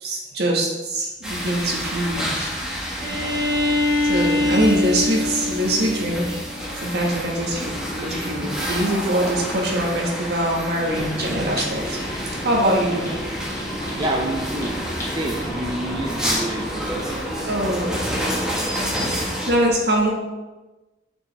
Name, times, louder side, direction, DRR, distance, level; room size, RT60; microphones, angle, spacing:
voice 1, 0.0-2.5 4.0-6.4 6.8-12.0 12.4-13.1 17.5-18.0 18.8-20.1, right 1 dB, 65° right, -2 dB, 1.5 m, -23 dB
sound 1, 1.2-19.5, equal, 5° right, 1.4 m, -29 dB
Bowed string instrument, 3.0-6.7, left 2 dB, 80° right, 1.5 m, -23 dB
sound 2, 10.8-17.2, equal, 20° left, 2.1 m, -32 dB
voice 2, 14.0-17.1 17.5-17.9 18.5-19.1, right 1 dB, 25° right, -1 dB, 0.5 m, -30 dB
6.9 x 5.4 x 3.4 m, 1.1 s
head